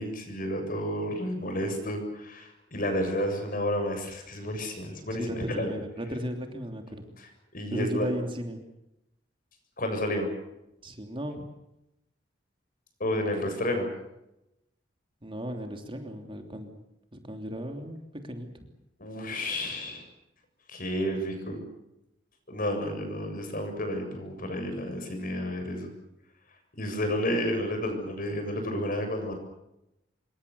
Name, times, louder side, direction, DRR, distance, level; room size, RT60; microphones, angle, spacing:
voice 1, 0.0-5.7 7.5-8.1 9.8-10.3 13.0-13.9 19.0-20.0 20.7-21.6 22.5-25.9 26.8-29.3, equal, 50° left, 5 dB, 7.4 m, -31 dB
voice 2, 5.1-7.2 7.7-8.7 10.8-11.5 15.2-16.8 17.1-18.7, equal, 30° right, 5 dB, 3.2 m, -36 dB
26.5 x 24.0 x 7.1 m, 0.88 s
head